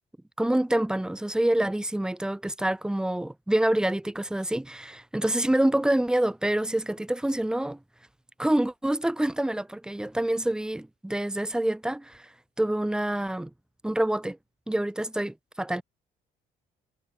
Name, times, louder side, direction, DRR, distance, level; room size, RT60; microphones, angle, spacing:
voice 1, 0.4-7.8 8.4-12.3 12.6-13.5 13.8-14.4 14.7-15.8, right 1 dB, 5° right, 0.5 m, -26 dB
cardioid pair, 110°, 17 cm